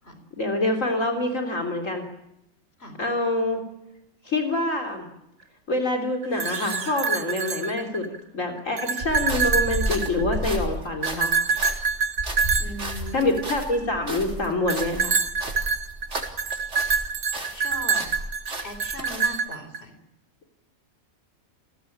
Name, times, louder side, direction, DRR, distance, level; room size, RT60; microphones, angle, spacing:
voice 1, 0.4-2.0 3.0-3.6 4.3-5.1 5.7-8.0 8.3-11.7 13.1-15.2, left 2 dB, 60° left, 3 dB, 3.8 m, -26 dB
sound 1, 6.2-8.2 8.6-10.5 11.0-13.7 14.7-19.8, right 5 dB, 70° right, 1.8 m, -26 dB
sound 2, 6.2-8.1, right 4 dB, 85° right, 2.7 m, -41 dB
sound 3, 9.0-17.1 17.3-19.3, right 1 dB, 50° right, 4.3 m, -32 dB
voice 2, 12.6-13.4 17.5-18.1 18.6-19.9, left 1 dB, 45° left, 8 dB, 4.1 m, -38 dB
28.5 x 18.5 x 8.8 m, 0.87 s
omnidirectional pair, 1.5 m